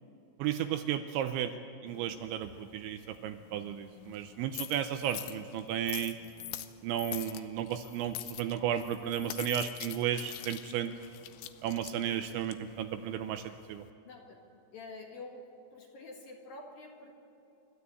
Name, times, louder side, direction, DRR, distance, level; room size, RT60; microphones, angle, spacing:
voice 1, 0.4-1.5 1.8-6.2 6.8-10.9 11.6-13.8, right 10 dB, 85° right, 8 dB, 2.8 m, -34 dB
sound 1, 1.9-13.9, left 15 dB, 80° left, 3.1 m, -46 dB
voice 2, 14.1-15.4 15.7-17.1, left 3 dB, 60° left, 1 dB, 2.9 m, -48 dB
29.5 x 13.0 x 8.4 m, 2.9 s
omnidirectional pair, 5.8 m